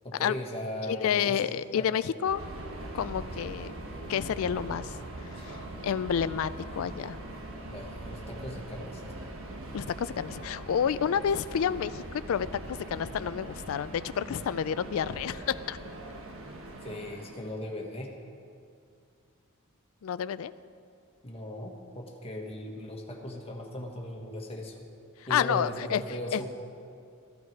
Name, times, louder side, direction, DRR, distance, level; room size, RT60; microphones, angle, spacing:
voice 1, 0.0-1.4 1.7-2.2 7.7-9.0 16.8-18.1 21.2-24.8 25.3-26.4, left 1 dB, 30° left, 0 dB, 1.5 m, -38 dB
voice 2, 0.8-2.4 2.9-3.7 4.1-7.2 9.7-15.8 20.0-20.5 25.2-26.0 26.3-26.4, left 8 dB, 70° left, 15 dB, 0.3 m, -30 dB
Subway metro underground, 2.2-17.6, right 1 dB, 65° right, 1.4 m, -42 dB
15.0 x 11.0 x 4.7 m, 2.4 s
head